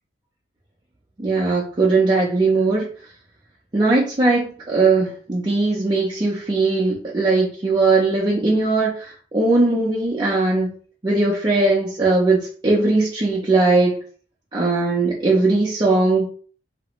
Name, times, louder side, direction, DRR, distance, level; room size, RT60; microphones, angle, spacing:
voice 1, 1.2-2.9 3.7-10.7 11.0-14.0 14.5-16.3, right 3 dB, 25° right, -6 dB, 0.4 m, -19 dB
2.4 x 2.1 x 2.8 m, 0.41 s
head